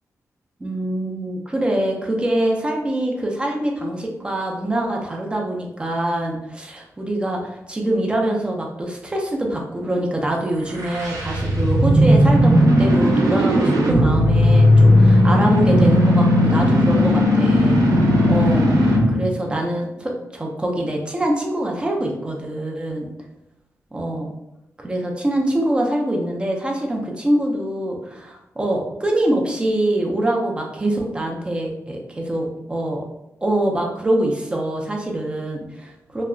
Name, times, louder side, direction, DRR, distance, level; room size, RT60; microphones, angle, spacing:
voice 1, 0.6-17.8 18.3-23.1 23.9-24.3 24.8-33.0 33.4-36.2, right 1 dB, 15° right, 0 dB, 0.5 m, -24 dB
sound 1, 10.6-19.2, left 1 dB, 90° right, 0.6 m, -16 dB
2.3 x 2.1 x 3.6 m, 0.89 s
wide cardioid pair, 130°, 6 cm